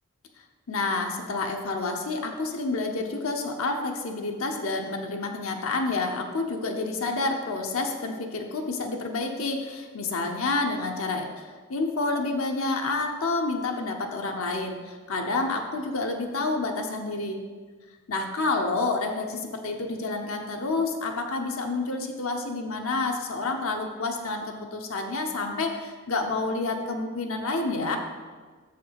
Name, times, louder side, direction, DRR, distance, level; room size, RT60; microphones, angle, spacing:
voice 1, 0.7-17.4 18.1-28.0, left 3 dB, 70° left, 3 dB, 0.8 m, -29 dB
7.1 x 5.4 x 5.7 m, 1.5 s
head